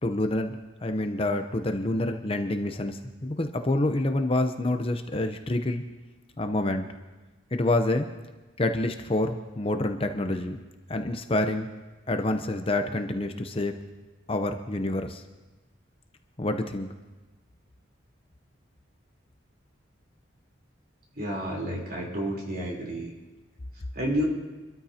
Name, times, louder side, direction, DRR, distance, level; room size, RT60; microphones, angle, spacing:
voice 1, 0.0-5.8 6.4-6.9 7.5-8.1 8.6-10.6 10.9-11.7 12.1-13.7 14.3-15.2 16.4-16.9, left 1 dB, 30° left, 6 dB, 0.7 m, -27 dB
voice 2, 21.2-23.1 23.9-24.2, equal, 50° right, -2 dB, 3.6 m, -30 dB
26.0 x 13.0 x 2.8 m, 1.2 s
head